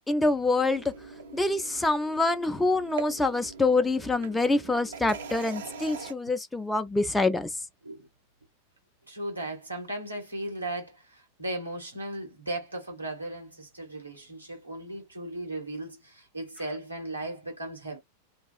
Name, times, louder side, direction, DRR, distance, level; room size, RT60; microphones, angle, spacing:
voice 1, 0.1-0.8 1.3-7.5, left 2 dB, 5° left, 0.3 m, -26 dB
sound 1, 0.5-6.1, right 4 dB, 60° right, 0.6 m, -43 dB
voice 2, 9.1-18.0, right 1 dB, 85° right, 1.4 m, -36 dB
2.6 x 2.3 x 2.3 m
figure-of-eight pair, 90°, 0 cm